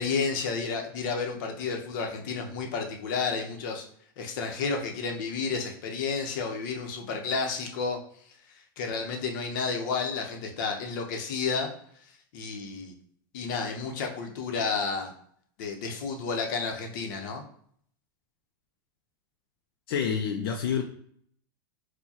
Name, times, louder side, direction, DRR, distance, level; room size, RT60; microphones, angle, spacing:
voice 1, 0.0-3.9 4.2-8.0 8.8-11.7 12.3-12.9 13.3-15.1 15.6-17.4, left 5 dB, 60° left, 3 dB, 0.8 m, -31 dB
voice 2, 19.9-20.8, left 7 dB, 85° left, 3 dB, 0.4 m, -28 dB
4.5 x 2.2 x 2.8 m, 0.63 s
supercardioid pair, 150°, 12 cm